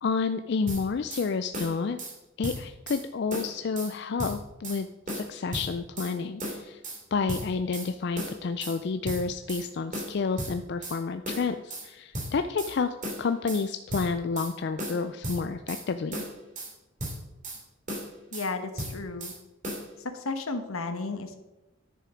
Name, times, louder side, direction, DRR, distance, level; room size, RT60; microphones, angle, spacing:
voice 1, 0.0-2.0 2.4-4.9 5.1-6.8 7.1-16.2, left 4 dB, 50° left, 9 dB, 0.4 m, -30 dB
sound 1, 0.7-1.3 1.5-2.1 2.4-3.0 3.3-3.9 4.2-4.8 5.1-6.1 6.4-7.0 7.3-7.9 8.2-8.8 9.1-9.6 9.9-11.0 11.2-11.9 12.1-12.7 13.0-13.6 13.9-14.5 14.8-15.8 16.1-16.7 17.0-17.6 17.9-18.5 18.8-19.4 19.6-19.9, equal, 35° right, 2.7 m, -35 dB
voice 2, 18.3-19.3 20.1-21.4, left 3 dB, 80° left, 7 dB, 1.1 m, -33 dB
10.5 x 6.6 x 5.0 m, 0.98 s
head